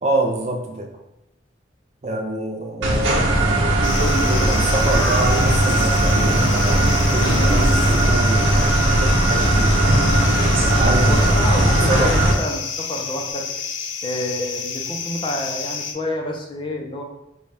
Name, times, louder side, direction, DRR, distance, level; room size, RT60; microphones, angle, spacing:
voice 1, 0.0-0.9 2.0-3.7 4.0-9.8 10.6-12.4, right 1 dB, 35° right, 2 dB, 0.4 m, -26 dB
sound 1, 2.8-12.3, right 1 dB, 90° right, 0.9 m, -18 dB
sound 2, 3.8-15.9, left 6 dB, 80° left, 0.5 m, -30 dB
voice 2, 11.0-13.5 14.0-17.0, left 1 dB, 25° left, 1 dB, 0.5 m, -28 dB
5.3 x 2.3 x 3.3 m, 0.88 s
head